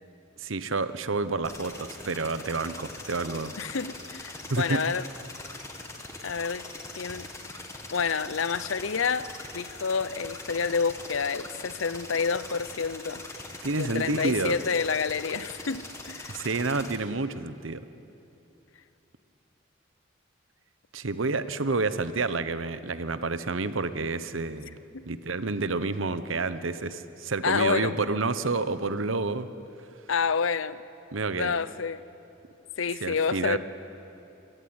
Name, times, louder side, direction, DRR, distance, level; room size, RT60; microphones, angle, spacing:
voice 1, 0.4-3.5 4.5-4.8 13.6-14.6 16.3-17.8 20.9-24.7 25.1-29.5 31.1-31.5 33.0-33.6, right 3 dB, 85° right, 13 dB, 1.0 m, -29 dB
sound 1, 1.4-17.0, left 2 dB, 15° left, 1.9 m, -42 dB
voice 2, 3.6-5.0 6.2-6.6 7.0-7.3 7.9-9.3 9.5-13.2 13.7-16.4 24.9-25.0 27.4-27.9 30.1-30.8 31.3-32.0 32.8-33.6, left 5 dB, 85° left, 15 dB, 0.7 m, -28 dB
26.0 x 17.5 x 9.7 m, 2.9 s
head